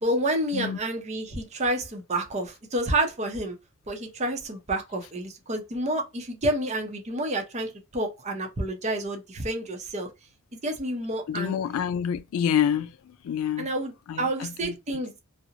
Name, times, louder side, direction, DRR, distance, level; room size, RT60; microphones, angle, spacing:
voice 1, 0.0-3.6 3.9-10.1 10.6-11.6 13.6-13.9 14.2-15.2, right 1 dB, 35° right, 0.6 m, -29 dB
voice 2, 11.3-13.7 14.1-14.8, left 8 dB, 85° left, 0.3 m, -27 dB
2.7 x 2.0 x 2.4 m
head